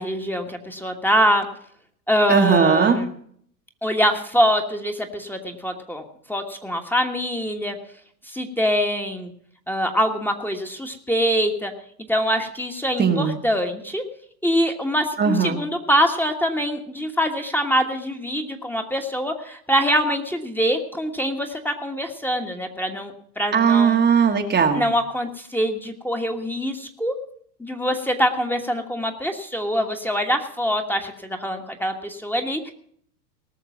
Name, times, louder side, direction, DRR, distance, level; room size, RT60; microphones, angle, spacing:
voice 1, 0.0-1.5 2.1-3.1 3.8-6.0 6.3-7.8 8.3-9.3 9.7-11.7 12.1-14.0 14.4-24.0 24.8-27.1 27.6-32.7, equal, 5° left, 4 dB, 1.4 m, -24 dB
voice 2, 2.3-3.0 13.0-13.4 15.2-15.6 23.5-24.8, right 6 dB, 20° right, 3 dB, 1.3 m, -18 dB
18.5 x 6.6 x 7.1 m, 0.62 s
hypercardioid pair, 100°, 50 cm